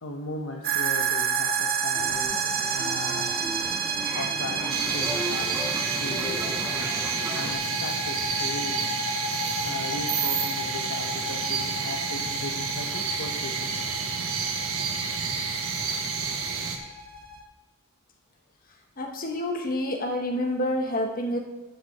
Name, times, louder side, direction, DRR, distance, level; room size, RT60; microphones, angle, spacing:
voice 1, 0.0-2.3 2.7-3.3 4.1-6.9 7.3-8.8 9.6-13.7, left 2 dB, 75° left, 1 dB, 1.0 m, -37 dB
sound 1, 0.6-17.4, right 4 dB, 45° right, 0.9 m, -31 dB
sound 2, 1.9-7.5, right 1 dB, 10° right, 0.7 m, -36 dB
sound 3, 4.7-16.8, right 5 dB, 80° right, 1.2 m, -30 dB
voice 2, 19.0-21.4, left 1 dB, 40° left, 2 dB, 1.3 m, -28 dB
7.8 x 6.8 x 7.3 m, 1.1 s
head